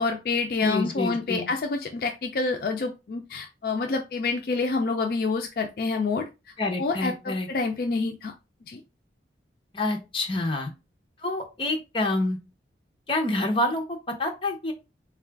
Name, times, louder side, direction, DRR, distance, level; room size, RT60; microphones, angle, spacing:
voice 1, 0.0-6.3 6.8-8.3 8.7-8.8, left 4 dB, 55° left, 3 dB, 0.4 m, -27 dB
voice 2, 0.6-1.5 6.6-7.5 9.7-10.7 11.2-12.4 13.1-14.7, left 2 dB, 30° left, 3 dB, 0.7 m, -27 dB
3.8 x 2.3 x 3.3 m, 0.27 s
head